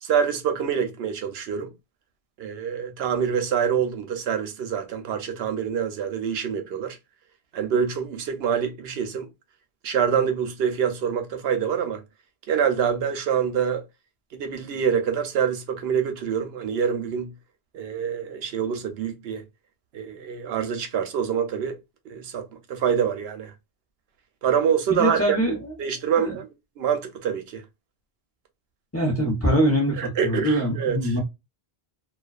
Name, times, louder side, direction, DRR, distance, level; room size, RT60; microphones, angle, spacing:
voice 1, 0.0-1.7 2.4-7.0 7.5-9.3 9.8-12.0 12.5-13.8 14.3-17.3 17.7-19.4 19.9-21.8 22.1-23.5 24.4-25.4 25.8-27.6 30.0-31.1, right 7 dB, 85° right, 0.8 m, -26 dB
voice 2, 24.9-25.7 26.1-26.3 28.9-31.2, equal, 15° left, 0.7 m, -23 dB
2.3 x 2.3 x 2.3 m
omnidirectional pair, 1.0 m